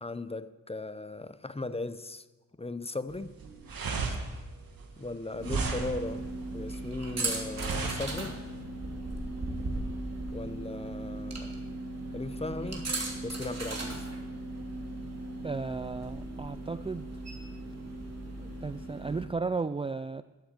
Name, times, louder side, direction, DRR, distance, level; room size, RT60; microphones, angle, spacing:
voice 1, 0.0-2.2 2.6-3.3 5.0-8.4 10.3-11.6 12.1-14.1, left 2 dB, 15° left, 0.6 m, -38 dB
sound 1, 3.1-8.6, right 4 dB, 80° right, 1.9 m, -35 dB
sound 2, 5.4-19.3, right 2 dB, 45° right, 3.0 m, -37 dB
voice 2, 15.4-17.1 18.4-20.2, right 4 dB, 15° right, 0.3 m, -34 dB
13.0 x 8.5 x 7.4 m
cardioid pair, 65°, 34 cm